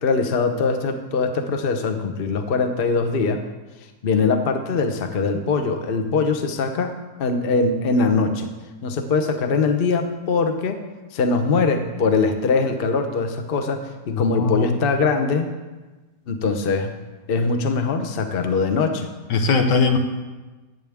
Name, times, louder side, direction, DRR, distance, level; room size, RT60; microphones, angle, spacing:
voice 1, 0.0-3.4 4.0-6.9 7.2-8.5 8.8-10.8 11.1-15.5 16.3-16.9 17.3-19.1, left 4 dB, 45° left, 6 dB, 0.8 m, -22 dB
voice 2, 14.1-14.8 19.3-20.0, left 4 dB, 80° left, 5 dB, 1.7 m, -20 dB
14.5 x 8.9 x 3.6 m, 1.2 s
omnidirectional pair, 1.9 m